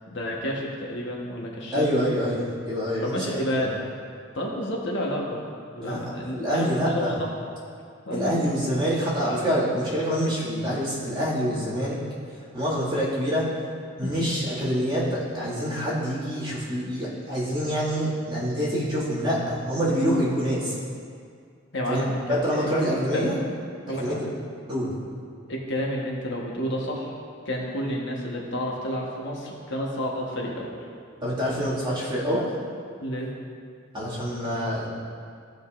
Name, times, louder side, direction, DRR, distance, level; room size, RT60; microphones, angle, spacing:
voice 1, 0.1-1.9 3.0-3.8 4.3-5.4 5.7-7.3 8.0-8.4 14.0-14.4 21.7-23.2 23.9-24.3 25.5-27.1 27.4-30.7 33.0-33.3, equal, 60° left, -2 dB, 1.2 m, -30 dB
voice 2, 1.7-3.6 5.8-7.2 8.1-12.0 12.5-13.4 14.0-20.7 21.9-22.0 22.3-23.4 24.0-24.3 24.7-24.9 31.2-32.5 33.9-34.9, equal, 25° right, -9 dB, 2.1 m, -26 dB
15.0 x 5.2 x 2.5 m, 2.3 s
head